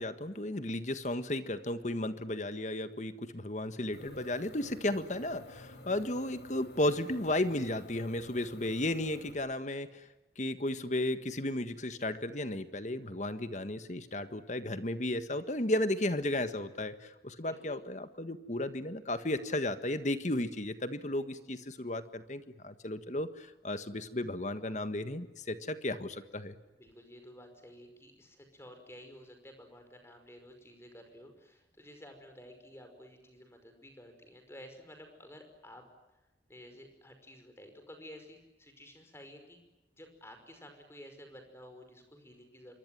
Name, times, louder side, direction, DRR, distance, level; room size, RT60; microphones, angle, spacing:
voice 1, 0.0-10.0 10.4-26.5, left 1 dB, 40° left, 10 dB, 1.6 m, -34 dB
sound 1, 3.9-9.3, left 2 dB, 70° left, 5.7 m, -51 dB
voice 2, 17.4-17.8 26.8-35.8 36.5-39.6 40.0-42.7, equal, 15° left, 6 dB, 5.4 m, -52 dB
27.0 x 23.5 x 9.3 m, 1.0 s
head